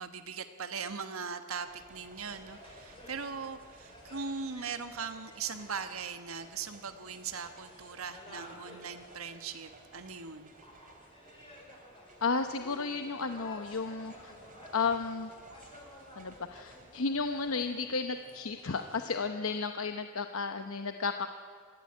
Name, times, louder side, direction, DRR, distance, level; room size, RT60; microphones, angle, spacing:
voice 1, 0.0-10.5, right 5 dB, 80° right, 8 dB, 1.2 m, -40 dB
sound 1, 1.6-17.7, right 2 dB, 40° right, 3.1 m, -57 dB
sound 2, 2.2-19.2, left 1 dB, 25° left, 4.6 m, -54 dB
voice 2, 12.2-14.3 14.7-15.3 16.2-21.3, left 4 dB, 75° left, 7 dB, 0.9 m, -33 dB
24.5 x 15.5 x 9.9 m, 2.3 s
head